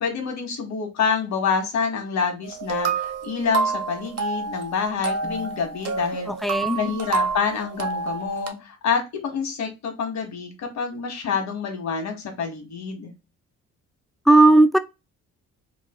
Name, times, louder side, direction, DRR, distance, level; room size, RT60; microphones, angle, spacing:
voice 1, 0.0-13.1, left 6 dB, 65° left, 1.4 m, -27 dB
sound 1, 2.4-8.5, right 4 dB, 55° right, 1.0 m, -28 dB
voice 2, 6.3-6.8 14.3-14.8, right 2 dB, ahead, 0.4 m, -16 dB
3.1 x 2.4 x 3.6 m
cardioid pair, 90°, 30 cm